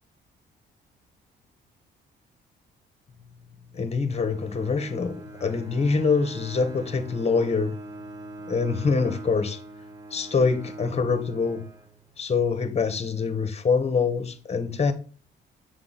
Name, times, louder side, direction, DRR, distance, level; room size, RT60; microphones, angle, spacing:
voice 1, 3.7-7.7 8.5-9.6 10.1-11.6 12.2-14.9, left 4 dB, 30° left, 0.9 m, -25 dB
Bowed string instrument, 4.1-12.3, right 2 dB, 20° right, 0.9 m, -42 dB
6.5 x 3.8 x 3.9 m
cardioid pair, 90°, 20 cm